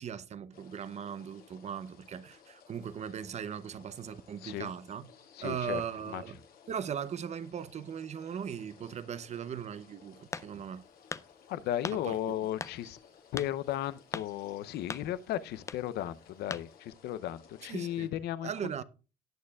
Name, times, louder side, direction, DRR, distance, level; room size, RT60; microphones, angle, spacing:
voice 1, 0.0-5.1 5.4-6.4 6.7-10.8 12.0-12.1 17.7-18.1 18.4-18.8, right 8 dB, 40° right, 0.7 m, -38 dB
sound 1, 0.5-18.1, left 7 dB, 60° left, 2.0 m, -59 dB
voice 2, 5.4-6.2 11.5-13.0 13.3-18.5, left 12 dB, 75° left, 0.6 m, -35 dB
sound 2, 10.3-10.7 11.1-11.3 11.8-12.0 12.6-12.8 13.4-13.5 14.1-14.3 14.9-15.1 15.6-15.8 16.5-16.7, left 4 dB, 15° left, 0.4 m, -38 dB
18.0 x 6.5 x 2.3 m
cardioid pair, 110°, 17 cm